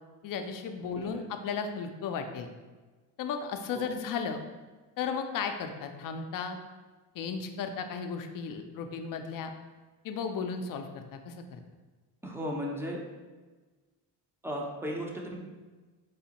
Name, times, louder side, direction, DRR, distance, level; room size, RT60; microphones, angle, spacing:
voice 1, 0.2-2.5 3.2-4.4 5.0-6.6 7.1-9.5 10.0-11.6, left 6 dB, 45° left, 6 dB, 0.5 m, -35 dB
voice 2, 12.2-13.0 14.4-15.4, equal, 5° right, -1 dB, 0.5 m, -35 dB
4.7 x 2.1 x 2.8 m, 1.3 s
supercardioid pair, 80°, 46 cm